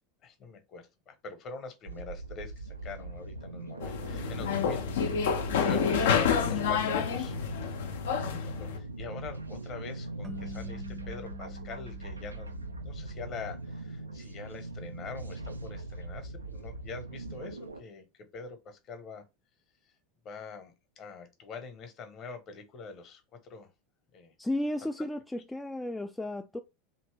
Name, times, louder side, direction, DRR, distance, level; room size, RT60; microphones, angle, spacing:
voice 1, 0.2-7.4 8.3-12.6 12.8-18.0 18.3-19.2 20.2-23.7 24.1-24.3, left 4 dB, 40° left, 0.9 m, -44 dB
sound 1, 1.9-17.8, right 2 dB, 85° right, 0.4 m, -41 dB
sound 2, 3.8-8.8, left 7 dB, 65° left, 0.5 m, -29 dB
sound 3, 10.2-13.4, equal, 25° right, 0.6 m, -46 dB
voice 2, 24.4-26.6, left 1 dB, 5° left, 0.3 m, -33 dB
2.8 x 2.6 x 3.2 m
figure-of-eight pair, 80°, 0 cm